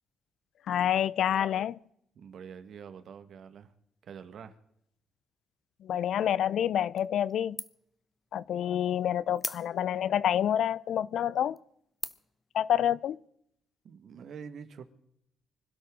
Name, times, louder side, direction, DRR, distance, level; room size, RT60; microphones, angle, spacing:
voice 1, 0.7-1.8 5.8-7.6 8.3-11.6 12.5-13.2, left 10 dB, 70° left, 0.5 m, -28 dB
voice 2, 2.1-3.7 4.0-4.6 13.8-14.9, right 7 dB, 65° right, 1.7 m, -46 dB
sound 1, 7.0-7.3 7.6-8.0 8.4-8.5 9.4-10.1 10.7-10.8 11.4-11.6 12.0-12.4, left 3 dB, 20° left, 0.9 m, -39 dB
25.5 x 12.0 x 3.9 m
cardioid pair, 90°, 0 cm